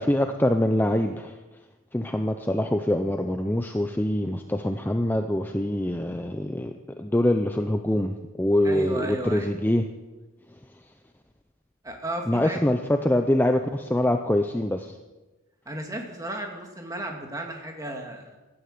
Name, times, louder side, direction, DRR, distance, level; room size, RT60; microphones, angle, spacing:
voice 1, 0.0-1.3 1.9-9.8 12.3-15.0, left 1 dB, 10° left, 6 dB, 0.6 m, -24 dB
voice 2, 8.6-9.5 11.8-12.6 15.7-18.4, right 1 dB, 15° right, 2 dB, 2.1 m, -34 dB
16.0 x 12.5 x 6.7 m, 1.2 s
head